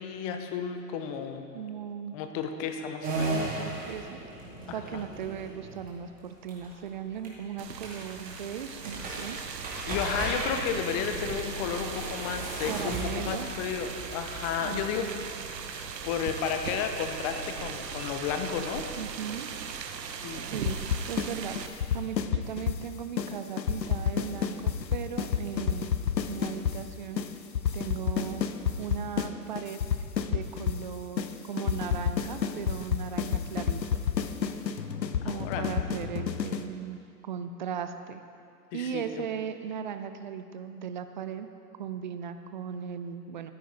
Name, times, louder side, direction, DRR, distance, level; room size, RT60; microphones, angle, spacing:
voice 1, 0.0-1.4 2.1-3.3 4.7-5.0 9.9-15.1 15.7-18.9 20.1-20.4 35.2-35.8 38.7-39.2, left 7 dB, 20° left, 6 dB, 0.6 m, -33 dB
voice 2, 1.5-2.2 3.3-4.2 4.7-9.4 12.7-13.5 14.6-14.8 19.0-19.5 20.4-25.9 26.3-27.3 27.7-28.4 28.8-29.8 30.3-34.1 35.2-38.2 38.7-41.5 41.8-43.5, right 8 dB, 30° right, 9 dB, 0.4 m, -37 dB
sound 1, 3.0-17.2, right 2 dB, 15° right, 2.3 m, -37 dB
sound 2, 7.6-21.7, right 6 dB, 80° right, 1.0 m, -39 dB
sound 3, 20.7-21.3 21.6-22.8 23.2-23.3 23.6-26.8 27.2-27.3 27.5-29.3 29.6-30.8 31.2-31.3 31.6-36.7, left 8 dB, 85° left, 0.8 m, -29 dB
13.5 x 9.3 x 3.9 m, 2.4 s
hypercardioid pair, 120°, 49 cm